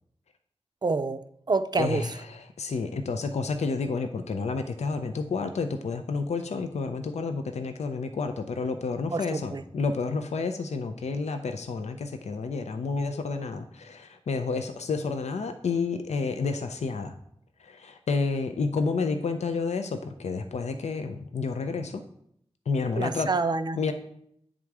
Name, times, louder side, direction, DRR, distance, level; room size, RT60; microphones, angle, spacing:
voice 1, 0.8-2.0 9.1-9.6 23.0-23.9, right 3 dB, 40° right, 11 dB, 0.4 m, -28 dB
voice 2, 1.7-17.1 17.6-22.0 22.7-23.3 23.7-23.9, left 4 dB, 90° left, 7 dB, 0.5 m, -30 dB
8.6 x 3.7 x 4.7 m, 0.71 s
wide cardioid pair, 85°, 11 cm